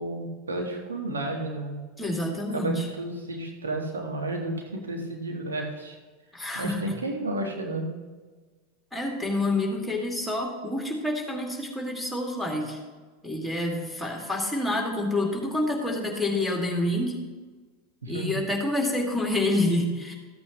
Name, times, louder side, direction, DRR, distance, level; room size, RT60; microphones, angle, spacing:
voice 1, 0.0-1.8 2.5-6.0 6.5-7.9 18.0-18.3, right 2 dB, 80° right, 1 dB, 1.5 m, -32 dB
voice 2, 2.0-2.9 6.3-6.9 8.9-12.8 13.2-17.2 18.1-20.1, left 1 dB, ahead, 0 dB, 2.1 m, -28 dB
14.0 x 8.4 x 3.1 m, 1.4 s
figure-of-eight pair, 85°, 0 cm